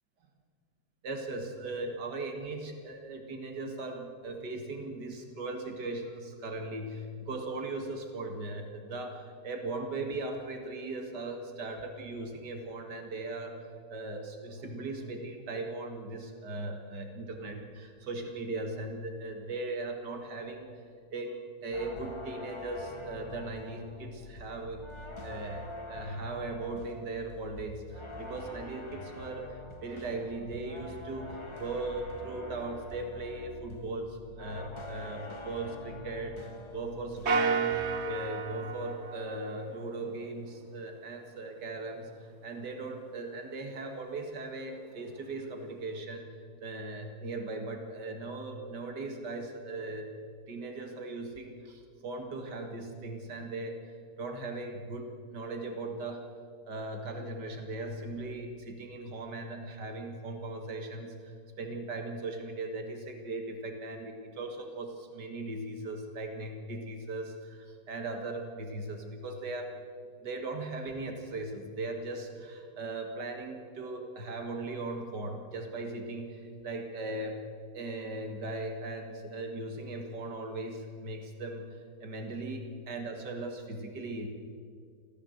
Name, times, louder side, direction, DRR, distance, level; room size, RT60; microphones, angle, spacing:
voice 1, 1.0-20.7 21.1-24.9 25.2-37.8 38.1-46.2 46.6-56.3 56.7-69.8 70.2-77.4 77.7-84.3, right 2 dB, 80° right, 4 dB, 2.6 m, -38 dB
sound 1, 21.7-37.4 37.7-38.2, left 2 dB, 20° left, 1.4 m, -45 dB
sound 2, 37.3-40.0, right 4 dB, 45° right, 1.3 m, -31 dB
27.0 x 15.0 x 8.0 m, 2.2 s
omnidirectional pair, 1.8 m